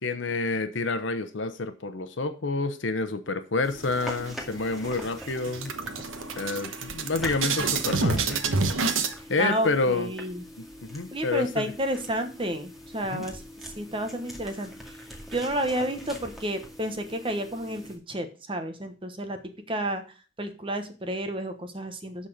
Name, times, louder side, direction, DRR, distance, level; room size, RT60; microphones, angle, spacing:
voice 1, 0.0-5.7 6.4-8.4 9.3-10.1 10.6-11.6 13.1-13.3, left 3 dB, 70° left, 10 dB, 0.9 m, -29 dB
sound 1, 3.6-18.0, equal, ahead, 2.1 m, -43 dB
sound 2, 3.8-4.6 4.9-5.1 5.4-9.1, right 4 dB, 90° right, 1.2 m, -28 dB
voice 2, 9.4-10.4 11.1-13.4 13.8-15.0 15.3-19.4 19.7-20.0 20.4-22.3, right 1 dB, 25° right, 7 dB, 1.2 m, -31 dB
12.5 x 4.3 x 5.0 m, 0.36 s
head